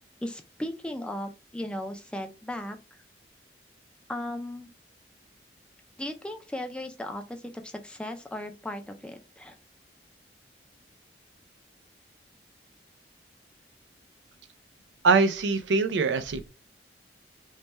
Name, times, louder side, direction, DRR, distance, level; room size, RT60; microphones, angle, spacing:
voice 1, 0.2-2.8 4.1-4.7 6.0-9.6, left 1 dB, 5° left, 0.3 m, -36 dB
voice 2, 15.0-16.5, right 4 dB, 85° right, 0.4 m, -23 dB
3.2 x 2.2 x 4.1 m
head